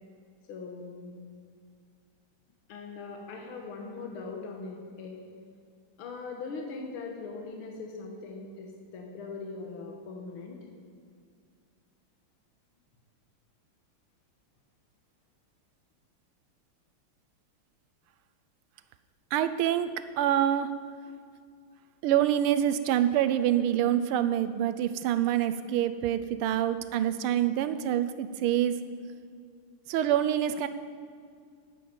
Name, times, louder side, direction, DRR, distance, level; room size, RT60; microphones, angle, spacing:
voice 1, 0.5-1.3 2.7-5.2 6.0-10.7, left 4 dB, 80° left, 1 dB, 2.1 m, -40 dB
voice 2, 19.3-19.9 20.2-20.7 22.0-28.8 29.9-30.7, right 11 dB, 85° right, 12 dB, 1.5 m, -26 dB
10.0 x 9.3 x 6.9 m, 2.2 s
omnidirectional pair, 2.3 m